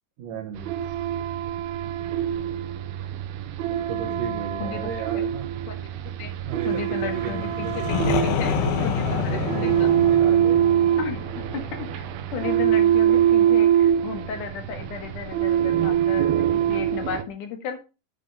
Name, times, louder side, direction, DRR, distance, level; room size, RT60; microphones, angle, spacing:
voice 1, 0.2-0.8 3.6-5.5 6.5-10.6, right 7 dB, 65° right, 1 dB, 2.6 m, -35 dB
sound 1, 0.6-17.2, right 10 dB, 85° right, 2.7 m, -23 dB
voice 2, 4.0-4.9 5.7-5.8 6.2-6.3 6.7-9.9 11.0-11.2 11.5-12.0 12.3-17.8, left 6 dB, 60° left, 5 dB, 3.0 m, -34 dB
sound 2, 7.1-12.8, left 7 dB, 85° left, 2.8 m, -28 dB
9.6 x 5.0 x 5.3 m, 0.30 s
omnidirectional pair, 4.2 m